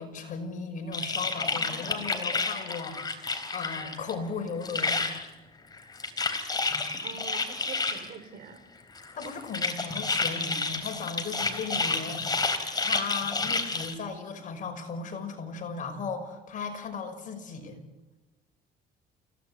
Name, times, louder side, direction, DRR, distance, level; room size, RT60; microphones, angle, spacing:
voice 1, 0.0-5.0 9.1-17.8, left 5 dB, 50° left, 5 dB, 5.5 m, -37 dB
sound 1, 0.9-4.1 4.4-5.3 5.7-8.1 9.0-13.9, left 3 dB, 25° left, 3.8 m, -30 dB
voice 2, 7.0-8.6, right 6 dB, 60° right, 10 dB, 4.0 m, -44 dB
30.0 x 17.0 x 9.5 m, 1.1 s
cardioid pair, 110°, 17 cm